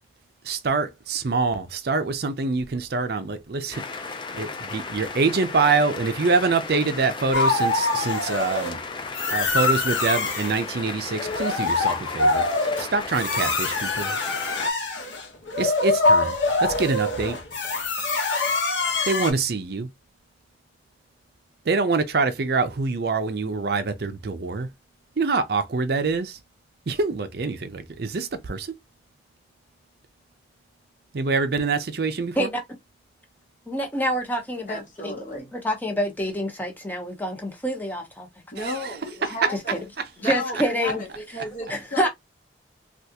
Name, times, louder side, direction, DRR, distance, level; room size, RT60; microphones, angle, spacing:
voice 1, 0.4-8.8 9.3-12.5 12.8-14.1 15.6-17.4 19.1-19.9 21.7-24.7 25.2-26.4 26.9-28.7 31.1-32.5 38.6-39.0 39.4-39.5 40.0-40.3, right 4 dB, 55° right, 0.5 m, -25 dB
sound 1, 3.7-14.7, left 4 dB, 25° left, 0.4 m, -35 dB
sound 2, 7.3-8.7 9.1-10.6 11.1-19.3, left 3 dB, 85° left, 1.0 m, -24 dB
voice 2, 33.7-38.3 39.7-39.8 40.2-41.0 41.6-42.1, equal, 10° left, 0.9 m, -27 dB
voice 3, 34.7-35.5 38.5-39.8 40.2-42.1, left 1 dB, 45° left, 0.9 m, -33 dB
3.4 x 2.4 x 2.8 m
head